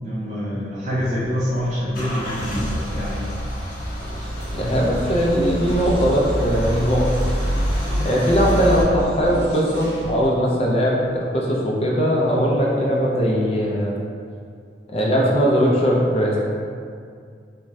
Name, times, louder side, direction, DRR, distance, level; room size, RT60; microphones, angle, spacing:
voice 1, 0.0-3.3, equal, 40° right, -8 dB, 0.5 m, -26 dB
Car / Engine starting / Idling, 1.0-8.8, equal, 50° left, 0.9 m, -26 dB
sound 1, 4.0-10.3, equal, 70° right, 1.1 m, -34 dB
voice 2, 4.5-7.1 8.0-11.0 11.3-13.9 14.9-16.4, equal, 35° left, -3 dB, 0.3 m, -19 dB
2.5 x 2.1 x 3.1 m, 2.2 s
head